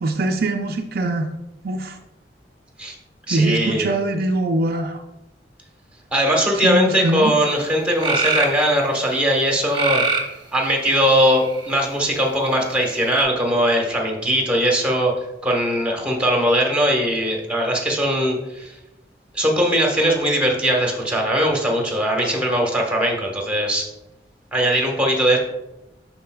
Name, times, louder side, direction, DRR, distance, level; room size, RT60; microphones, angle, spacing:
voice 1, 0.0-1.3 1.6-2.0 3.3-5.0 6.6-7.3, right 2 dB, 60° right, 4 dB, 0.5 m, -22 dB
voice 2, 3.3-3.9 6.1-10.0 10.5-15.1 15.4-18.7 19.3-23.8 24.5-25.4, equal, 5° right, 0 dB, 1.2 m, -20 dB
sound 1, 7.3-7.4 8.0-8.6 9.7-10.4 11.2-11.9 13.2-13.3, right 4 dB, 25° right, 1.0 m, -22 dB
12.0 x 4.3 x 2.3 m, 0.96 s
head